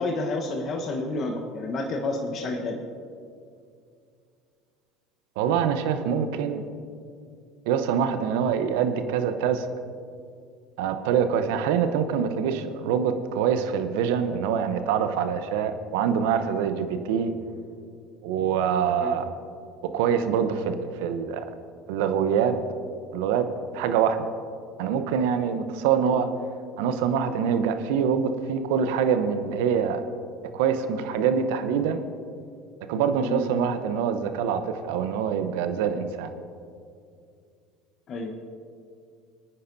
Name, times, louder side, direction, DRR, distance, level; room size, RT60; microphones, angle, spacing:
voice 1, 0.0-2.8 19.0-19.1 26.0-26.2 33.2-33.4 38.1-38.3, left 2 dB, 45° left, 2 dB, 1.1 m, -30 dB
voice 2, 5.4-6.6 7.7-9.7 10.8-17.3 18.2-19.3 19.9-21.4 21.9-22.6 23.1-23.4 23.7-24.3 24.8-26.3 26.8-30.0 30.5-32.0 32.9-36.3, right 7 dB, 75° right, 9 dB, 0.8 m, -25 dB
21.0 x 9.6 x 2.7 m, 2.3 s
hypercardioid pair, 75°, 0 cm